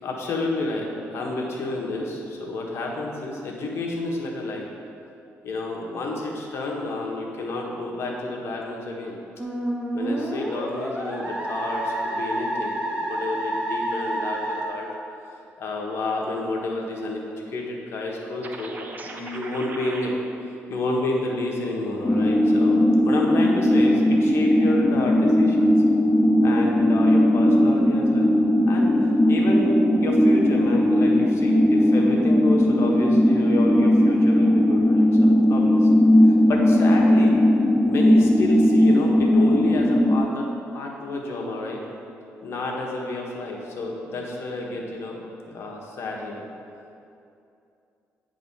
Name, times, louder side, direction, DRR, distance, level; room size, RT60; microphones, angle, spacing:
voice 1, 0.0-4.6 5.4-9.1 9.9-14.9 15.6-18.8 19.0-20.1 20.7-22.8 23.1-25.7 26.4-28.3 28.7-28.9 29.3-37.4 37.9-40.5 40.7-41.8 42.4-45.2 45.5-46.4, left 2 dB, 60° left, -1 dB, 1.2 m, -30 dB
Musical instrument, 9.4-14.6, right 1 dB, 20° right, 1.1 m, -28 dB
sound 1, 18.4-20.1, right 3 dB, 35° right, 0.7 m, -38 dB
sound 2, 22.0-40.2, left 1 dB, 5° left, 0.6 m, -18 dB
8.7 x 3.8 x 5.5 m, 2.7 s
cardioid pair, 105°, 5 cm